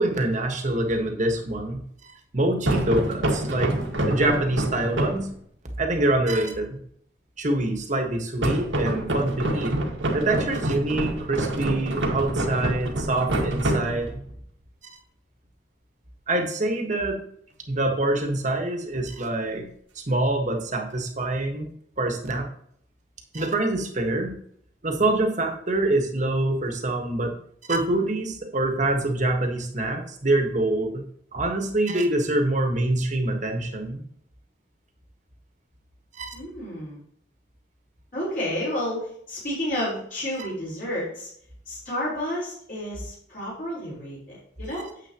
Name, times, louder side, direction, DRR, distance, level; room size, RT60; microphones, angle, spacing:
voice 1, 0.0-5.3 5.8-6.8 7.4-9.8 10.1-14.2 16.3-17.2 17.7-19.7 19.9-21.7 22.0-22.5 23.3-24.4 24.8-27.4 27.7-31.0 31.3-34.0 36.1-36.3 44.7-44.8, right 2 dB, 40° right, 4 dB, 1.5 m, -25 dB
sound 1, 2.6-5.3 8.4-14.3, right 1 dB, 85° right, 1.8 m, -26 dB
voice 2, 36.3-37.0 38.1-41.3 41.7-44.9, left 1 dB, 45° left, -7 dB, 4.1 m, -31 dB
9.5 x 7.7 x 3.0 m, 0.65 s
head